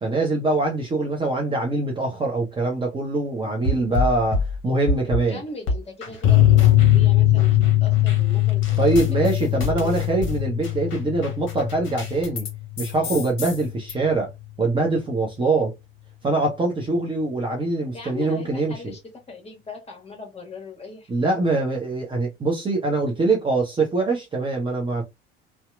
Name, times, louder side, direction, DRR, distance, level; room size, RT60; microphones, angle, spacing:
voice 1, 0.0-5.4 8.8-12.5 12.8-14.3 14.6-15.7 16.2-18.9 21.1-25.0, right 2 dB, 15° right, 0.7 m, -23 dB
sound 1, 3.6-5.3 5.7-7.1 7.3-12.5 12.8-13.9, left 2 dB, 40° left, 1.0 m, -29 dB
voice 2, 5.1-8.8 9.1-10.1 17.9-19.0 19.3-21.3, left 4 dB, 20° left, 1.2 m, -40 dB
sound 2, 6.2-13.3 13.6-13.7 14.0-14.1, left 14 dB, 65° left, 0.5 m, -20 dB
2.7 x 2.1 x 2.4 m
figure-of-eight pair, 65°, 30 cm